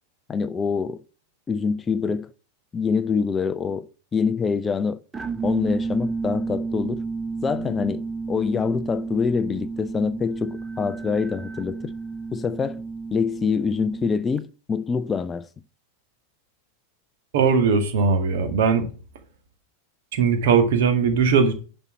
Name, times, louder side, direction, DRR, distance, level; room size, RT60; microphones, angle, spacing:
voice 1, 0.3-1.0 1.5-2.3 2.7-3.9 4.1-5.0 5.4-7.0 7.4-11.9 12.3-12.8 13.1-15.5, left 5 dB, 20° left, 0.5 m, -25 dB
sound 1, 5.1-14.4, right 4 dB, 15° right, 0.7 m, -31 dB
voice 2, 17.3-18.9 20.1-21.5, right 5 dB, 55° right, 1.8 m, -19 dB
10.5 x 4.4 x 7.1 m
figure-of-eight pair, 90°, 0 cm